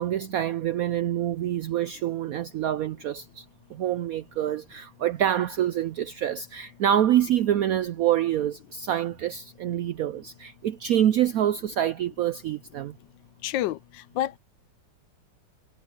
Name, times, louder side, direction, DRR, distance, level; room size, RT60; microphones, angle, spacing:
voice 1, 0.0-3.4 3.7-12.9, right 11 dB, 80° right, 0.8 m, -26 dB
voice 2, 13.4-13.8 14.2-14.4, left 13 dB, 80° left, 1.3 m, -27 dB
omnidirectional pair, 2.1 m